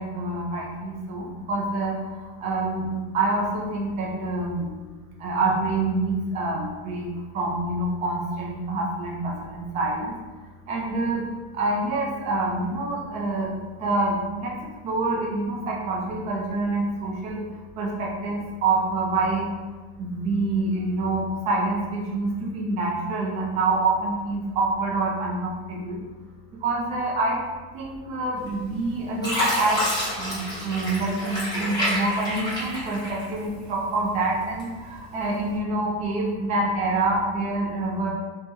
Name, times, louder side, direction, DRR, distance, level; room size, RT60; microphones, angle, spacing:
voice 1, 0.0-2.1 2.4-4.7 5.2-7.1 7.3-10.1 10.7-11.2 11.5-13.5 13.8-14.6 14.8-17.4 17.8-19.5 20.0-26.0 26.6-27.4 27.7-29.8 30.2-38.1, right 2 dB, 20° right, -2 dB, 0.3 m, -26 dB
Fill (with liquid), 28.5-28.8 29.2-33.6 34.0-34.9 35.4-35.6, equal, 10° left, 1.0 m, -28 dB
3.3 x 2.1 x 3.0 m, 1.3 s
supercardioid pair, 155°, 34 cm